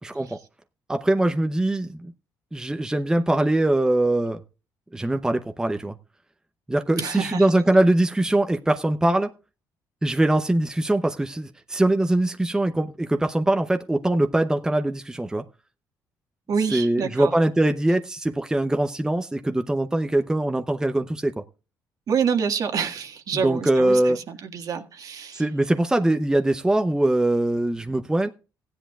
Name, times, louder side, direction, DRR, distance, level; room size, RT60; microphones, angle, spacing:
voice 1, 0.0-0.4 0.9-2.1 2.5-4.4 4.9-5.9 6.7-9.3 10.0-15.4 16.7-21.3 23.3-24.2 25.3-28.3, right 1 dB, 10° right, 0.7 m, -22 dB
voice 2, 7.0-7.4 16.5-17.3 22.1-25.4, right 6 dB, 55° right, 1.7 m, -27 dB
16.0 x 10.0 x 2.4 m
cardioid pair, 100°, 7 cm